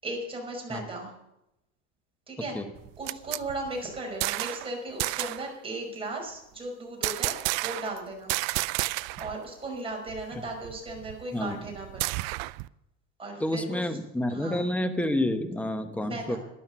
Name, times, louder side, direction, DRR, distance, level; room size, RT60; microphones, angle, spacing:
voice 1, 0.0-1.1 2.3-2.5 3.0-7.3 7.6-8.3 9.2-12.2 13.2-13.8 14.3-14.7 16.0-16.4, right 2 dB, 15° right, 0 dB, 5.4 m, -36 dB
sound 1, 2.8-4.7 5.0-5.5 7.0-8.0 8.3-9.4 9.6-9.7 10.1-12.7, right 22 dB, 55° right, 0.5 m, -31 dB
voice 2, 13.4-16.4, left 1 dB, 5° left, 8 dB, 1.1 m, -29 dB
12.5 x 10.5 x 6.9 m, 0.87 s
supercardioid pair, 120°, 37 cm